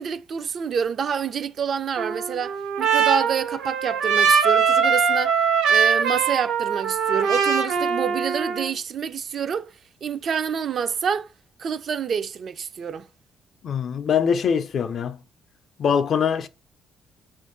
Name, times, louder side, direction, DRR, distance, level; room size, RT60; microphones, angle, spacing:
voice 1, 0.0-5.4 5.7-9.7 10.0-11.3 11.6-13.1, right 7 dB, 55° right, 0.4 m, -27 dB
Trumpet, 2.0-8.7, right 6 dB, 90° right, 0.8 m, -22 dB
voice 2, 13.6-15.2 15.8-16.5, left 7 dB, 60° left, 0.4 m, -23 dB
5.1 x 2.5 x 3.7 m
cardioid pair, 90°, 0 cm